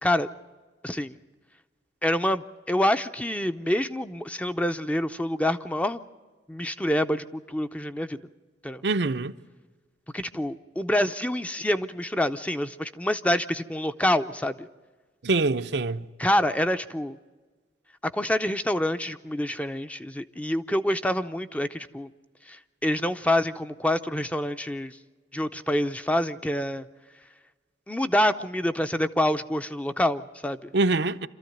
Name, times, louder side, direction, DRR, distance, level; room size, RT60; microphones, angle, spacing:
voice 1, 0.8-1.1 2.0-6.0 6.5-8.2 8.6-8.8 10.1-14.7 16.2-17.2 18.0-22.1 22.5-24.9 25.3-26.9 27.9-30.7, left 1 dB, 10° left, 0.6 m, -27 dB
voice 2, 8.8-9.3 15.2-16.0 30.7-31.3, right 3 dB, 75° right, 0.7 m, -24 dB
27.0 x 14.0 x 9.2 m
head